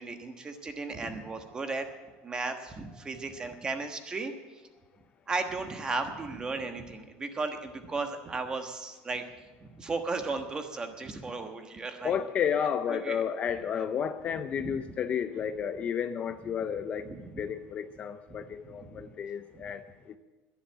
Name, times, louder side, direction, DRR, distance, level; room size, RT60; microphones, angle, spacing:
voice 1, 0.0-4.3 5.3-9.2 9.6-12.2 12.9-13.2 14.6-14.7 17.0-17.4 18.6-19.0 19.5-19.7, right 3 dB, 20° right, 6 dB, 1.3 m, -35 dB
voice 2, 12.0-17.1 17.4-19.8 20.1-20.2, left 8 dB, 30° left, 10 dB, 0.5 m, -32 dB
11.0 x 10.5 x 8.6 m, 1.2 s
cardioid pair, 155°, 4 cm